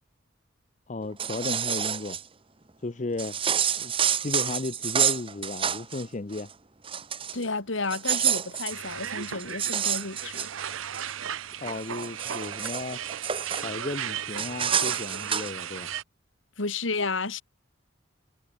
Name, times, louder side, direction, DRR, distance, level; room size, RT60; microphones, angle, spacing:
voice 1, 0.9-2.2 2.8-3.4 3.8-3.9 4.2-6.5 11.6-13.0 13.6-15.9, left 2 dB, 40° left, 0.6 m, -34 dB
sound 1, 1.0-2.2 3.2-6.0 6.3-6.5 6.8-7.4 7.8-11.1 11.6-13.7 14.4-15.5, right 8 dB, 25° right, 1.1 m, -28 dB
voice 2, 7.3-10.5 16.6-17.4, left 3 dB, 75° left, 2.3 m, -31 dB
sound 2, 8.7-16.0, right 9 dB, 90° right, 0.8 m, -36 dB
head